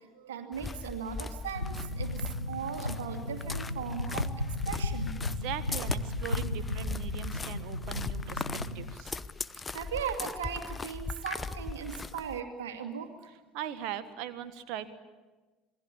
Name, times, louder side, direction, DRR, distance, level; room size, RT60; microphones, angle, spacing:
voice 1, 0.1-5.2 6.3-6.5 8.4-8.8 9.7-13.3, right 7 dB, 70° right, 5 dB, 2.4 m, -38 dB
sound 1, 0.5-12.4, left 4 dB, 20° left, 0.9 m, -39 dB
sound 2, 1.5-8.9, left 1 dB, 90° left, 1.0 m, -35 dB
voice 2, 5.4-8.4 8.7-9.2 13.5-14.9, right 11 dB, 55° right, 11 dB, 1.5 m, -40 dB
27.5 x 21.0 x 8.8 m, 1.2 s
figure-of-eight pair, 65°, 0 cm